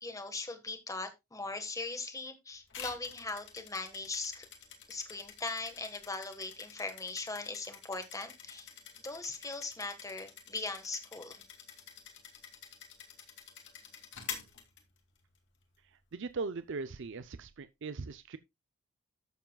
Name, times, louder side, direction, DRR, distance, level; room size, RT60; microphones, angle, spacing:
voice 1, 0.0-4.5 4.9-8.7 9.0-11.4, left 3 dB, 15° left, 1.4 m, -40 dB
sound 1, 2.7-15.4, left 7 dB, 55° left, 2.2 m, -48 dB
voice 2, 16.1-18.4, right 4 dB, 60° right, 0.5 m, -39 dB
13.0 x 7.2 x 2.3 m
head